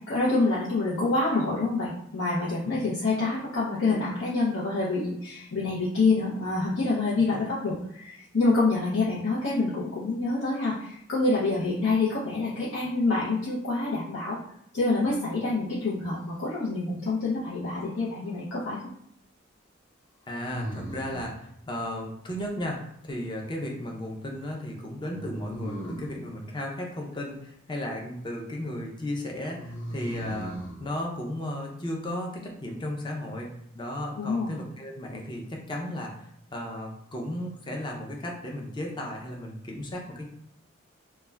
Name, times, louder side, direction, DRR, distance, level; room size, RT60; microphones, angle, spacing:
voice 1, 0.1-14.4 14.7-18.8 34.2-34.5, left 3 dB, 80° left, -9 dB, 0.7 m, -27 dB
sound 1, 17.7-18.4 20.4-21.4 25.1-26.2 29.5-30.8, equal, 5° left, 0.9 m, -37 dB
voice 2, 20.3-33.5 33.7-40.3, left 1 dB, 25° left, -1 dB, 0.5 m, -35 dB
2.3 x 2.2 x 3.2 m, 0.73 s
head